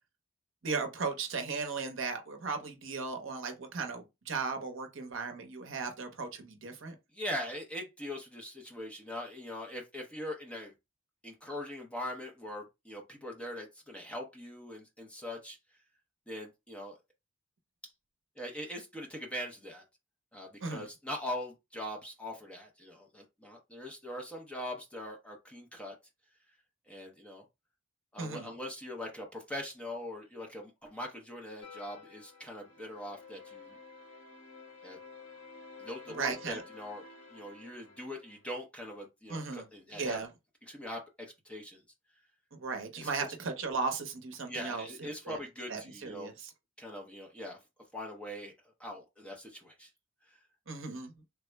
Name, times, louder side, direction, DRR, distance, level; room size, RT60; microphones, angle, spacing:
voice 1, 0.6-6.9 20.6-20.9 28.2-28.5 36.1-36.6 39.3-39.7 39.9-40.3 42.5-45.4 45.7-46.5 50.7-51.1, right 4 dB, 60° right, 0.7 m, -36 dB
voice 2, 7.1-10.7 11.2-15.6 16.3-17.0 18.4-19.8 20.3-26.0 26.9-27.4 28.1-33.8 34.8-35.0 35.8-37.0 37.3-40.2 40.7-41.8 42.9-43.1 44.5-46.3 46.8-47.6 47.9-48.5 48.8-49.9 50.3-50.4, left 1 dB, 5° left, 0.5 m, -42 dB
sound 1, 31.6-38.5, left 4 dB, 60° left, 1.1 m, -52 dB
3.4 x 2.0 x 3.2 m
head